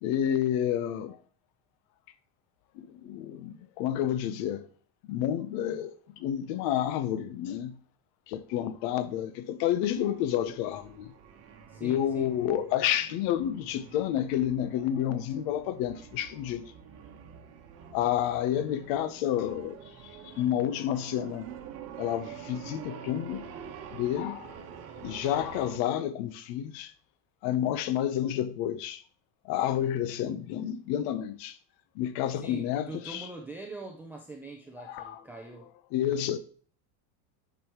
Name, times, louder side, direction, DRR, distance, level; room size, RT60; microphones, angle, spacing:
voice 1, 0.0-1.2 2.8-4.7 5.1-7.8 8.3-11.1 11.8-16.6 17.9-19.8 20.2-21.5 22.0-23.5 23.9-24.5 25.0-26.9 27.4-29.0 29.4-31.6 32.0-33.3 34.8-35.2 35.9-36.4, left 11 dB, 60° left, 0.9 m, -30 dB
sound 1, 9.8-25.8, right 8 dB, 35° right, 1.2 m, -47 dB
voice 2, 11.7-12.3 32.4-35.7, right 3 dB, 5° right, 0.5 m, -43 dB
9.9 x 6.2 x 3.0 m
cardioid pair, 155°, 43 cm